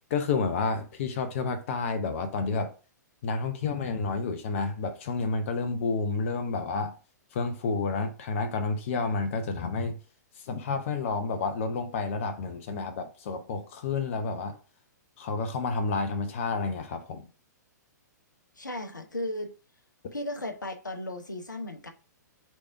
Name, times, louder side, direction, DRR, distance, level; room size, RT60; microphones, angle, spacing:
voice 1, 0.1-2.7 3.2-7.0 7.3-10.0 10.4-14.6 15.2-17.3, left 4 dB, 45° left, 0.6 m, -30 dB
voice 2, 18.6-19.5 20.1-21.9, left 1 dB, 80° left, 0.7 m, -35 dB
3.4 x 3.1 x 4.4 m
figure-of-eight pair, 110°, 10 cm